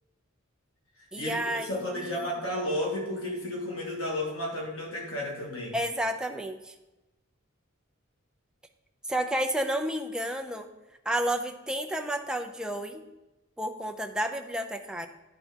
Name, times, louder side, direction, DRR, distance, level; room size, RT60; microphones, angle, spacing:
voice 1, 1.1-2.3 5.7-6.7 9.1-10.7 11.1-13.0 13.6-15.1, right 1 dB, 5° right, 4 dB, 0.5 m, -31 dB
voice 2, 1.7-5.8, left 1 dB, 85° left, -2 dB, 2.2 m, -32 dB
10.5 x 4.1 x 4.4 m, 1.0 s
head